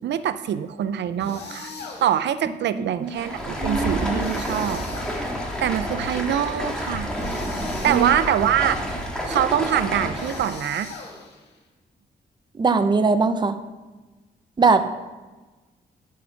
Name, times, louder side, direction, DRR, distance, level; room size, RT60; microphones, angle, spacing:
voice 1, 0.0-1.7 2.0-5.2 5.6-7.1 7.8-8.8 9.2-10.9, right 10 dB, 90° right, 13 dB, 0.5 m, -24 dB
sound 1, 1.2-2.3 4.2-5.6 7.2-8.5 10.1-11.6, left 4 dB, 75° left, 1.9 m, -39 dB
voice 2, 2.7-3.1 3.6-4.2 7.8-8.1 12.6-13.6 14.6-14.8, right 4 dB, 25° right, 9 dB, 0.6 m, -21 dB
Stream, 3.0-10.6, equal, 5° left, 1.9 m, -29 dB
9.7 x 6.4 x 5.7 m, 1.2 s
wide cardioid pair, 140°, 18 cm